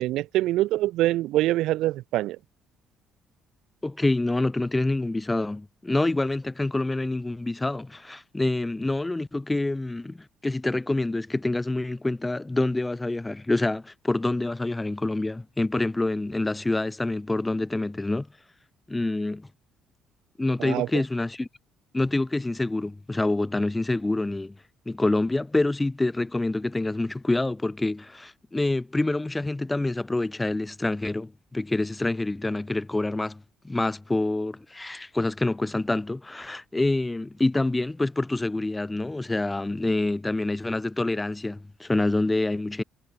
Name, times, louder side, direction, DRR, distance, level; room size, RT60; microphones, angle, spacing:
voice 1, 0.0-2.4 20.6-20.9, right 16 dB, 80° right, 0.3 m, -24 dB
voice 2, 3.8-10.2 10.4-18.3 18.9-19.5 20.4-21.5 21.9-24.5 24.9-42.8, left 2 dB, 10° left, 0.3 m, -26 dB
cardioid pair, 150°, 0 cm